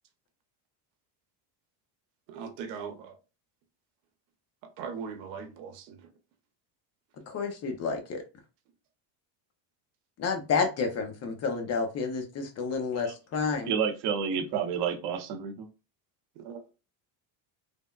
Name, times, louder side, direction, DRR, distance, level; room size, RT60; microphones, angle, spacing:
voice 1, 2.3-3.2 4.8-6.0 16.4-16.6, right 6 dB, 90° right, 0.9 m, -39 dB
voice 2, 7.3-8.2 10.2-13.7, left 5 dB, 30° left, 0.7 m, -30 dB
voice 3, 13.7-15.7, right 7 dB, 50° right, 0.8 m, -30 dB
3.4 x 2.1 x 2.3 m
supercardioid pair, 125°, 50 cm